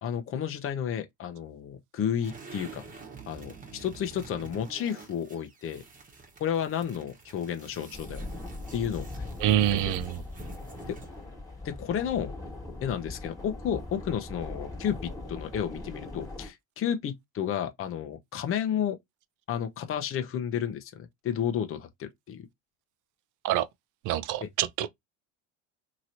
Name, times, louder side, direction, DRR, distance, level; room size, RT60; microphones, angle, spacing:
voice 1, 0.0-2.8 3.3-5.8 6.4-8.2 8.7-9.1 9.9-10.0 10.9-11.0 11.6-12.3 12.8-19.0 19.5-22.5, left 9 dB, 40° left, 0.8 m, -32 dB
sound 1, 2.2-11.2, right 4 dB, 25° right, 1.2 m, -47 dB
sound 2, 7.9-16.5, left 2 dB, 10° left, 1.6 m, -40 dB
voice 2, 9.4-10.2 23.4-23.7 24.0-24.9, right 12 dB, 60° right, 0.6 m, -26 dB
3.0 x 2.9 x 2.6 m
supercardioid pair, 105°, 36 cm